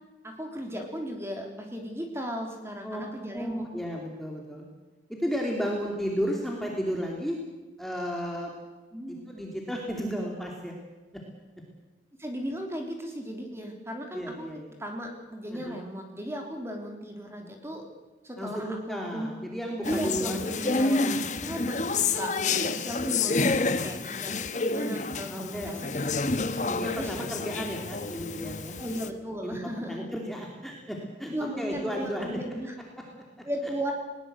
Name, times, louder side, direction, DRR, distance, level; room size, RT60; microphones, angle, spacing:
voice 1, 0.2-3.6 8.9-9.2 12.2-17.8 18.2-19.3 19.9-26.0 26.9-27.1 28.8-30.1 31.3-32.7 33.4-33.9, equal, 15° right, 3 dB, 3.3 m, -36 dB
voice 2, 3.3-4.6 5.1-7.4 7.8-8.5 9.1-10.7 14.1-14.7 15.5-15.8 18.4-21.2 22.1-22.9 23.1-23.9 25.3-28.8 29.4-29.5 29.9-32.4, equal, ahead, -1 dB, 2.7 m, -34 dB
sound 1, 19.8-29.1, left 3 dB, 40° left, 1.1 m, -29 dB
20.5 x 19.0 x 7.9 m, 1.2 s
head